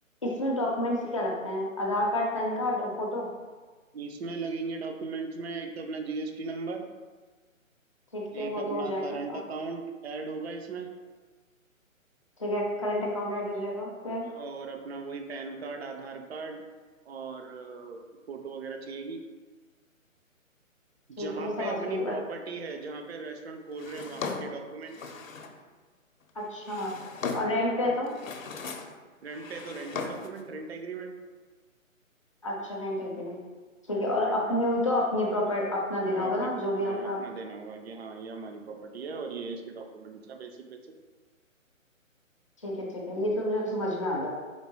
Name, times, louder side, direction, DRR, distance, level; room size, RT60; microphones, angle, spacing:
voice 1, 0.2-3.3 8.1-9.4 12.4-14.3 21.2-22.1 26.5-26.9 27.3-28.1 32.4-33.4 33.9-37.2 42.6-44.3, left 1 dB, 25° left, -3 dB, 0.5 m, -29 dB
voice 2, 3.9-6.9 8.3-10.9 14.2-16.6 17.1-18.0 18.3-19.2 21.1-25.2 27.8-27.9 29.2-31.1 34.1-34.7 36.1-40.9, right 4 dB, 50° right, 4 dB, 0.5 m, -38 dB
Drawer open or close, 23.8-25.6 26.4-27.7 28.1-29.0 29.3-30.4, left 4 dB, 70° left, 0.6 m, -37 dB
4.3 x 3.3 x 3.0 m, 1.3 s
figure-of-eight pair, 145°, 41 cm